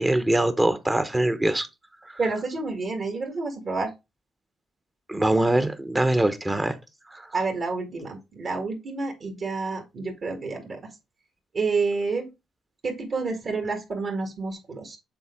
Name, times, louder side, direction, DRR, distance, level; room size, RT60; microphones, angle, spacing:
voice 1, 0.0-1.7 2.0-2.2 5.1-6.8 7.1-7.3, right 1 dB, 15° right, 0.8 m, -23 dB
voice 2, 2.2-3.9 7.3-10.9 11.5-12.3 12.8-15.0, right 4 dB, 50° right, 1.7 m, -29 dB
7.1 x 3.8 x 3.6 m
cardioid pair, 90°, 0 cm